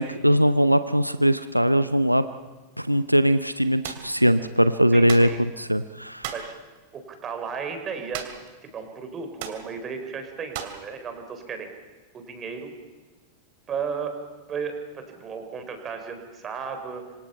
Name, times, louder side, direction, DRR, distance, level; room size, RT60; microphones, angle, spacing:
voice 1, 0.0-2.2 2.8-5.3 5.6-6.3, equal, 90° right, 12 dB, 0.7 m, -20 dB
sound 1, 3.8-4.1 5.1-5.4 6.2-6.5 8.1-8.5 8.8-8.9 9.4-9.6 10.5-10.8, right 10 dB, 50° right, 2.7 m, -35 dB
voice 2, 4.9-5.4 6.3-6.6 6.9-8.3 8.6-11.7 12.1-12.7 13.7-14.2 14.5-17.1, right 6 dB, 25° right, 7 dB, 4.4 m, -34 dB
26.5 x 25.5 x 5.7 m, 1.4 s
figure-of-eight pair, 90°, 0 cm